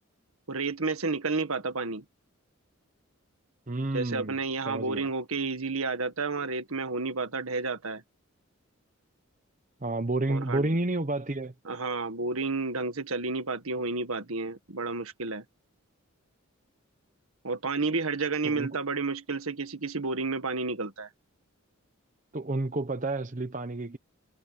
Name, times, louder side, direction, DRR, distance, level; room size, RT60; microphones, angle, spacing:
voice 1, 0.5-2.0 3.9-8.0 10.3-10.7 11.7-15.4 17.4-21.1, right 3 dB, 80° right, 1.8 m, -31 dB
voice 2, 3.7-4.4 4.7-5.1 9.8-11.5 18.4-18.7 22.3-24.0, right 2 dB, 35° right, 0.9 m, -30 dB
head